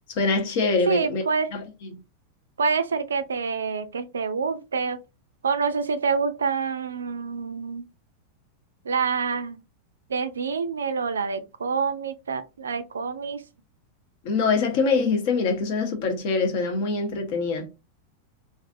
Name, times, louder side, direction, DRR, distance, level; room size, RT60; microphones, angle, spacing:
voice 1, 0.1-1.2 1.5-1.6 1.9-2.0 14.2-17.7, left 4 dB, 50° left, 0.9 m, -24 dB
voice 2, 0.9-1.5 2.6-5.0 5.4-7.9 8.8-9.6 10.1-13.4, right 5 dB, 70° right, 0.4 m, -27 dB
3.2 x 2.5 x 2.5 m
figure-of-eight pair, 90°, 0 cm